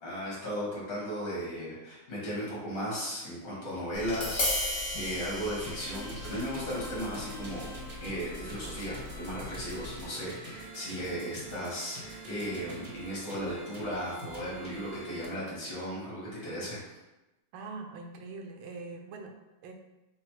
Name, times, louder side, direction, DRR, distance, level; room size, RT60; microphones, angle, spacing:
voice 1, 0.0-7.7 8.0-16.8, equal, 80° left, -7 dB, 2.5 m, -36 dB
Tap, 3.9-10.1, left 1 dB, 50° left, 1.2 m, -37 dB
sound 1, 5.6-15.2, right 1 dB, 50° right, 0.7 m, -45 dB
voice 2, 17.5-19.7, right 3 dB, 85° right, 4 dB, 1.4 m, -43 dB
6.3 x 2.2 x 3.0 m, 1.0 s
omnidirectional pair, 2.2 m